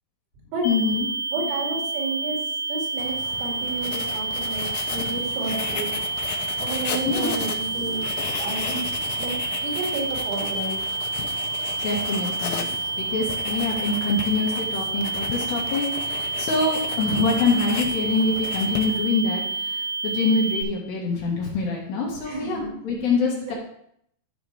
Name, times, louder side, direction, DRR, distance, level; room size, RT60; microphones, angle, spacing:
voice 1, 0.6-1.1 7.1-7.3 11.8-12.7 13.0-23.5, left 3 dB, 65° left, -2 dB, 3.3 m, -25 dB
sound 1, 0.6-20.6, right 4 dB, 50° left, 2.2 m, -29 dB
voice 2, 1.3-2.4 2.7-3.1 3.4-5.9 6.6-8.0 8.4-8.8 9.2-9.3 9.6-10.8 22.3-22.7 23.3-23.6, right 3 dB, 75° right, -1 dB, 4.9 m, -31 dB
Writing, 3.0-19.2, left 9 dB, 85° left, 3.4 m, -35 dB
13.5 x 6.0 x 3.4 m, 0.70 s
omnidirectional pair, 5.9 m